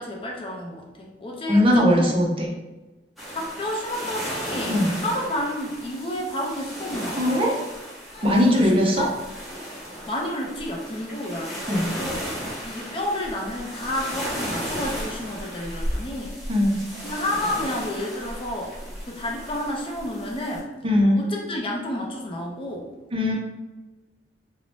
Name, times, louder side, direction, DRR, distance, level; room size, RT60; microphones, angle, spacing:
voice 1, 0.0-2.1 2.4-2.5 3.3-7.2 8.1-9.1 10.1-12.2 12.6-16.3 17.0-18.8 19.0-20.7 21.2-22.9, left 1 dB, 30° left, -1 dB, 0.5 m, -30 dB
voice 2, 1.5-2.5 4.7-5.0 7.2-7.5 8.2-9.0 11.7-11.9 16.5-16.8 20.8-21.2 23.1-23.3, left 1 dB, 30° right, -1 dB, 0.4 m, -19 dB
sound 1, 3.2-20.6, equal, ahead, 0.9 m, -35 dB
2.6 x 2.0 x 3.1 m, 1.1 s
head